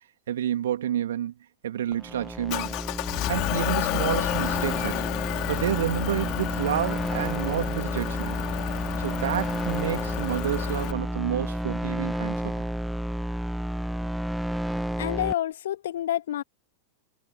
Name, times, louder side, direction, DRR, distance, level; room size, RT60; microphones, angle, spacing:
voice 1, 0.3-1.3 1.6-2.7 3.3-5.0 5.5-8.4 9.0-12.6, right 11 dB, 60° right, 3.1 m, -29 dB
sound 1, 1.9-15.3, right 1 dB, ahead, 1.6 m, -31 dB
Motor vehicle (road) / Engine, 2.5-10.9, left 23 dB, 40° left, 6.2 m, -31 dB
voice 2, 15.0-16.4, left 12 dB, 60° left, 2.4 m, -28 dB
figure-of-eight pair, 90°, 0 cm